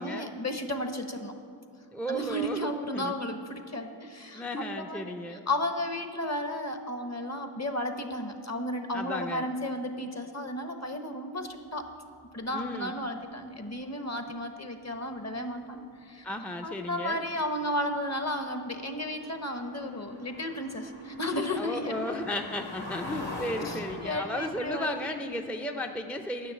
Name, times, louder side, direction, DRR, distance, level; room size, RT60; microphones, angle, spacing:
voice 1, 0.0-1.3 2.1-11.9 12.3-16.2 16.6-22.3 23.6-25.3, left 1 dB, 35° left, 6 dB, 1.2 m, -34 dB
voice 2, 1.9-3.2 4.3-5.4 8.9-9.5 12.5-13.0 16.2-17.2 21.6-26.5, left 1 dB, 5° left, 4 dB, 0.5 m, -34 dB
sound 1, 18.4-18.5 18.6-24.7, left 2 dB, 55° left, 2.3 m, -42 dB
10.5 x 6.3 x 8.3 m, 2.4 s
cardioid pair, 45°, 46 cm